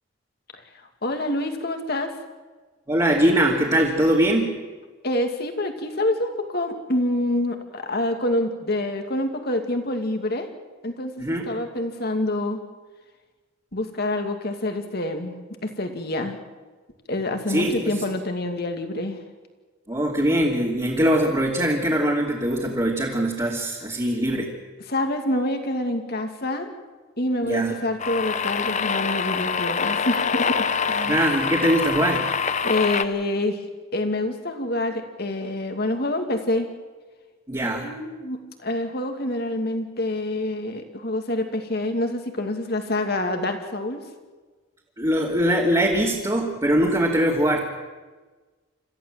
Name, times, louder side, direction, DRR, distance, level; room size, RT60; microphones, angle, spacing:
voice 1, 1.0-2.1 5.0-10.5 10.8-12.6 13.7-15.3 15.6-16.4 17.1-19.2 24.9-26.7 27.2-31.2 32.6-33.6 33.9-36.7 37.8-44.0, left 1 dB, 50° left, 5 dB, 2.5 m, -26 dB
voice 2, 2.9-4.6 11.2-11.5 17.5-17.9 19.9-24.5 27.4-27.7 31.0-32.3 37.5-37.9 45.0-47.6, right 1 dB, 20° right, -4 dB, 2.7 m, -22 dB
sound 1, 28.0-33.0, left 6 dB, 35° left, 0.8 m, -25 dB
27.0 x 14.5 x 7.5 m, 1.3 s
head